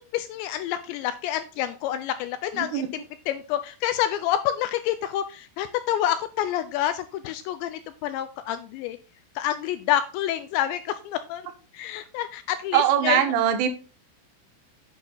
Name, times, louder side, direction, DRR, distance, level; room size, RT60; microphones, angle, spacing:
voice 1, 0.0-9.0 9.4-11.4 11.7-13.2, left 12 dB, 85° left, 11 dB, 2.6 m, -28 dB
voice 2, 2.5-2.9 12.7-13.7, right 9 dB, 85° right, 7 dB, 3.7 m, -21 dB
9.1 x 7.4 x 3.9 m, 0.34 s
omnidirectional pair, 5.6 m